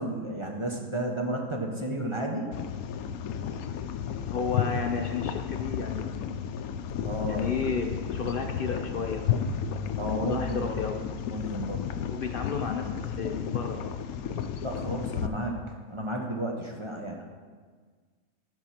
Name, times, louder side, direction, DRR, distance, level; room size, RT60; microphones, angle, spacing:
voice 1, 0.0-2.5 7.0-7.4 10.0-10.8 11.3-11.9 14.6-15.6 15.9-17.2, right 1 dB, 25° right, 0 dB, 0.8 m, -32 dB
sound 1, 2.5-15.3, left 8 dB, 80° left, 1.0 m, -33 dB
voice 2, 4.3-6.4 7.2-9.5 10.0-11.1 12.1-14.0, left 5 dB, 55° left, 4 dB, 0.6 m, -33 dB
11.0 x 4.8 x 5.8 m, 1.5 s
omnidirectional pair, 1.5 m